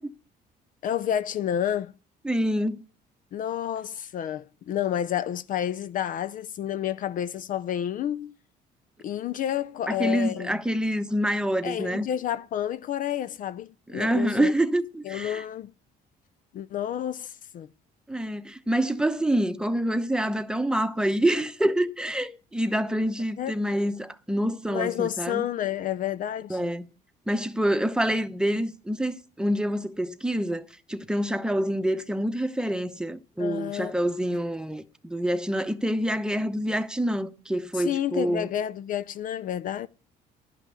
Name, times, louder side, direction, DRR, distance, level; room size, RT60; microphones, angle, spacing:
voice 1, 0.8-1.9 3.3-8.3 9.0-10.6 11.6-14.5 15.0-15.7 16.5-17.7 23.4-23.6 24.7-26.7 33.4-34.0 37.7-39.9, left 10 dB, 55° left, 0.5 m, -30 dB
voice 2, 2.2-2.8 9.9-12.1 13.9-15.4 18.1-25.4 26.5-26.8 27.3-30.6 30.9-38.5, right 1 dB, 5° right, 0.9 m, -26 dB
11.5 x 5.9 x 8.2 m
cardioid pair, 110°, 17 cm